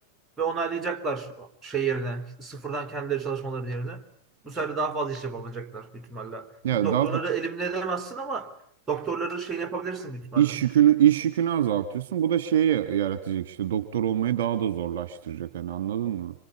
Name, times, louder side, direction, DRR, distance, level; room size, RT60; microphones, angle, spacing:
voice 1, 0.4-4.0 4.4-8.5 8.9-10.6, right 5 dB, 15° right, 3.7 m, -31 dB
voice 2, 6.6-7.2 10.3-16.3, right 10 dB, 55° right, 1.7 m, -24 dB
26.5 x 25.5 x 8.4 m
figure-of-eight pair, 90°, 0 cm